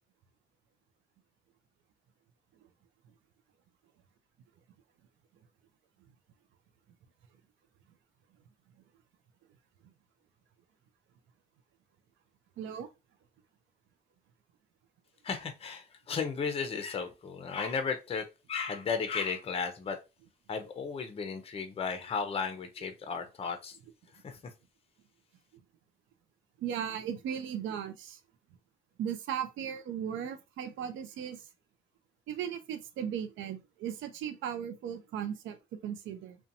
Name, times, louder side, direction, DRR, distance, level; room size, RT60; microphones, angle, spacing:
voice 1, 12.6-12.9 26.6-28.2 29.0-31.4 32.3-36.4, right 9 dB, 75° right, 0.4 m, -37 dB
voice 2, 15.2-20.0 20.5-23.8 24.2-24.4, left 5 dB, 30° left, 0.5 m, -34 dB
2.7 x 2.2 x 2.5 m
cardioid pair, 90°, 20 cm